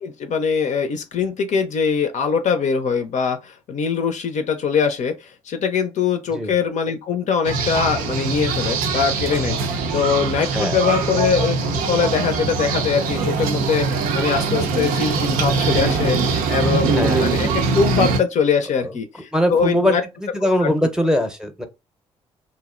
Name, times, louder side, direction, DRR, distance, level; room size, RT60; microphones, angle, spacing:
voice 1, 0.0-17.5 17.7-20.0 20.6-20.7, left 6 dB, 50° left, 0.5 m, -22 dB
sound 1, 7.4-18.2, right 4 dB, 70° right, 0.5 m, -22 dB
voice 2, 16.9-17.3 18.8-19.0 19.3-21.7, equal, 5° right, 0.7 m, -21 dB
2.5 x 2.0 x 2.4 m
hypercardioid pair, 45°, 15 cm